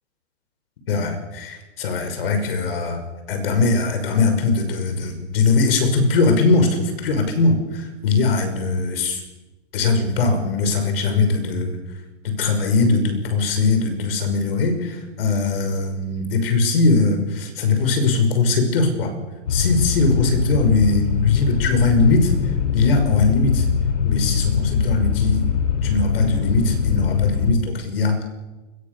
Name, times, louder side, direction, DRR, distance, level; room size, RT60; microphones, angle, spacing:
voice 1, 0.9-3.0 3.3-9.2 9.7-11.8 12.2-19.1 19.5-22.3 22.7-23.7 24.0-25.5 25.8-28.4, left 3 dB, 50° left, 7 dB, 6.2 m, -20 dB
sound 1, 19.5-27.5, left 7 dB, 75° left, 3.8 m, -22 dB
27.5 x 22.0 x 7.0 m, 1.2 s
hypercardioid pair, 170°, 37 cm